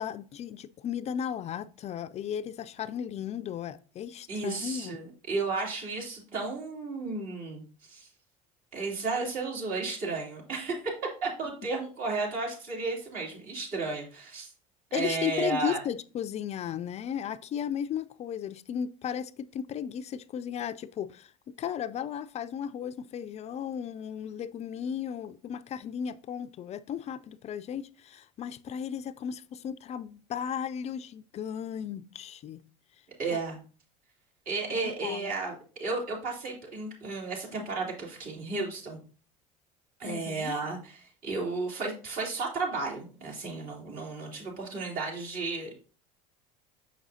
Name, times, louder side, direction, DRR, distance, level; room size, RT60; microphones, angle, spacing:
voice 1, 0.0-5.0 14.9-21.3 21.6-32.6 33.3-33.4 34.7-35.3 40.0-40.5, left 9 dB, 40° left, 0.4 m, -35 dB
voice 2, 4.3-7.6 7.9-8.1 8.7-10.7 11.2-14.5 14.9-15.8 33.2-33.6 34.4-39.0 40.0-45.7, right 3 dB, 50° right, 3.0 m, -33 dB
7.0 x 6.1 x 2.7 m
supercardioid pair, 95°, 18 cm